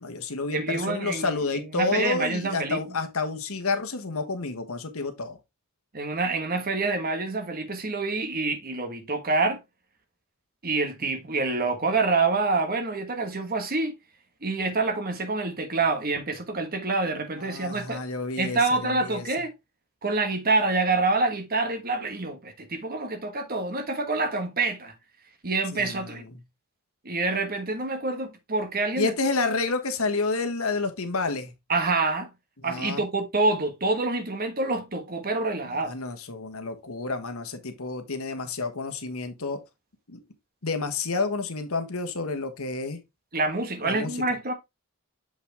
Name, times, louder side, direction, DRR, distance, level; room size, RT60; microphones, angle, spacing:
voice 1, 0.0-5.4 17.4-19.3 25.7-26.2 29.0-31.5 32.6-33.0 35.7-39.6 40.1-40.2 40.6-43.0 43.8-44.2, left 3 dB, 70° left, 1.3 m, -30 dB
voice 2, 0.5-2.8 5.9-9.6 10.6-13.9 14.4-18.0 18.4-19.5 20.0-24.9 25.4-26.2 27.0-29.1 31.7-32.3 32.6-35.9 43.3-44.5, right 3 dB, 45° right, 1.4 m, -27 dB
7.0 x 5.5 x 3.4 m
head